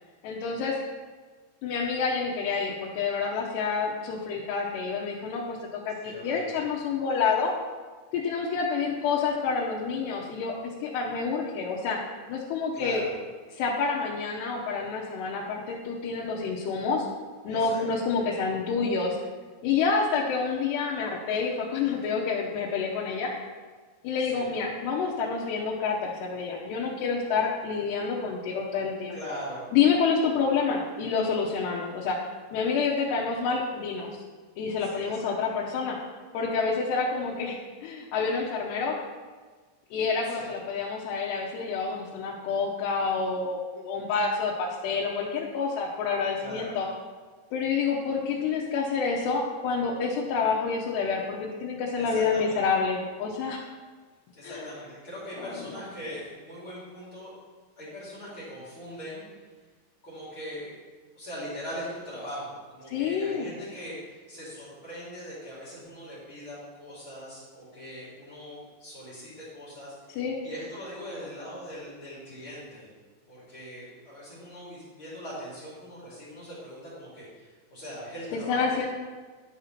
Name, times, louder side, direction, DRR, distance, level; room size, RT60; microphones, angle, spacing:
voice 1, 0.2-0.8 1.6-5.6 5.9-7.5 8.1-12.0 12.3-13.0 13.5-17.1 17.4-19.2 19.6-23.3 24.0-29.2 29.7-32.2 32.5-34.1 34.6-36.0 36.3-39.0 39.9-46.9 47.5-53.6 54.4-54.7 55.4-55.8 62.9-63.5 70.2-70.4 78.3-78.9, left 5 dB, 75° left, -4 dB, 2.9 m, -28 dB
voice 2, 6.0-6.6 12.7-13.1 17.5-17.8 24.3-24.5 29.1-29.6 34.8-35.3 40.3-40.5 46.4-46.7 52.0-52.6 54.3-57.3 57.8-59.2 60.0-60.7 61.1-72.9 73.3-78.9, equal, 35° left, -8 dB, 3.0 m, -41 dB
11.0 x 5.5 x 5.8 m, 1.4 s
omnidirectional pair, 5.1 m